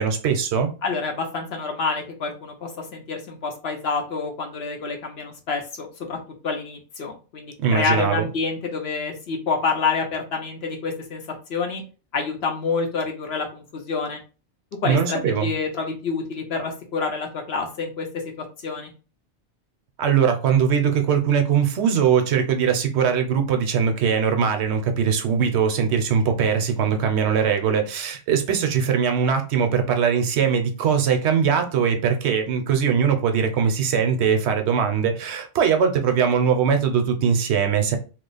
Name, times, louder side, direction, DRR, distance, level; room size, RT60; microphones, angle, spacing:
voice 1, 0.0-0.7 7.6-8.3 14.8-15.5 20.0-38.0, right 7 dB, 70° right, 0.9 m, -21 dB
voice 2, 0.8-6.2 6.4-11.2 11.5-11.8 12.1-14.2 14.8-18.1 18.4-18.9, left 4 dB, 60° left, 1.0 m, -27 dB
2.9 x 2.0 x 3.9 m
omnidirectional pair, 1.2 m